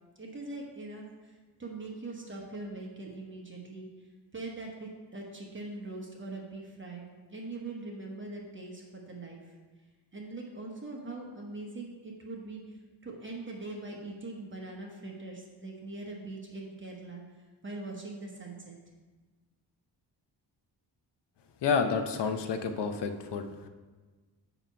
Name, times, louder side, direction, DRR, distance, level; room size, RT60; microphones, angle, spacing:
voice 1, 0.2-3.9 4.3-9.5 10.1-12.8 13.0-17.2 17.6-18.8, right 2 dB, 30° right, -1 dB, 1.0 m, -42 dB
voice 2, 21.6-23.7, left 5 dB, 80° left, 7 dB, 0.7 m, -30 dB
9.0 x 3.0 x 5.6 m, 1.3 s
wide cardioid pair, 130°, 41 cm